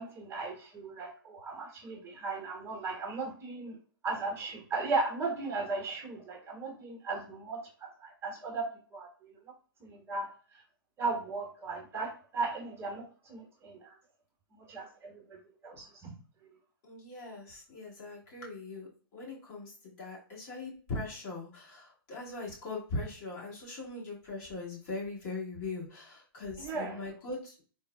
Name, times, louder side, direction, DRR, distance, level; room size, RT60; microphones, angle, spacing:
voice 1, 0.0-3.8 4.0-8.7 8.9-9.3 9.8-10.3 11.0-14.0 14.5-15.4 15.6-16.1 26.6-27.0, right 3 dB, 20° right, 0 dB, 0.9 m, -36 dB
voice 2, 16.8-27.6, left 3 dB, 40° left, -5 dB, 1.4 m, -40 dB
3.6 x 2.0 x 2.2 m, 0.40 s
hypercardioid pair, 120°, 12 cm